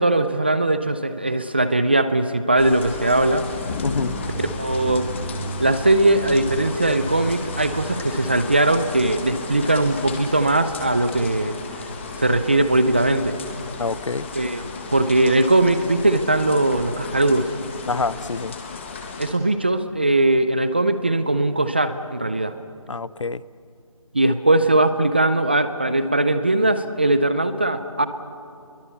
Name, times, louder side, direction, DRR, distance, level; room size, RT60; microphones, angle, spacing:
voice 1, 0.0-3.5 4.4-5.1 5.6-11.5 12.2-13.3 14.3-17.5 19.2-22.5 24.1-28.1, right 2 dB, 20° right, 11 dB, 0.5 m, -20 dB
sound 1, 2.6-19.3, left 4 dB, 20° left, 1.8 m, -34 dB
sound 2, 3.3-9.3, right 3 dB, 40° right, 3.0 m, -35 dB
voice 2, 3.8-4.2 13.8-14.3 17.9-18.6 22.9-23.4, left 4 dB, 60° left, 20 dB, 0.7 m, -26 dB
29.0 x 22.5 x 6.9 m, 2.5 s
figure-of-eight pair, 170°, 18 cm